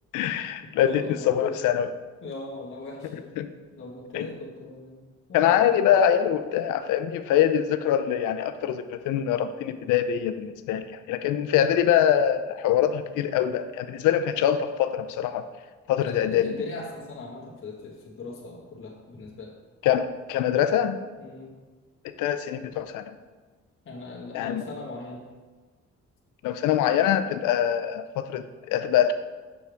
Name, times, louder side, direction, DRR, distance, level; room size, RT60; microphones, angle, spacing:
voice 1, 0.1-1.9 3.4-3.5 4.1-4.3 5.3-15.5 15.9-16.5 19.8-21.0 22.2-23.0 24.3-24.6 26.4-29.1, left 10 dB, 90° left, 10 dB, 0.5 m, -24 dB
voice 2, 0.8-1.6 2.2-3.3 3.7-5.0 5.3-5.7 16.0-19.5 21.2-21.5 23.8-25.3, left 3 dB, 45° left, -4 dB, 1.5 m, -38 dB
7.0 x 6.4 x 3.5 m, 1.3 s
cardioid pair, 90°, 30 cm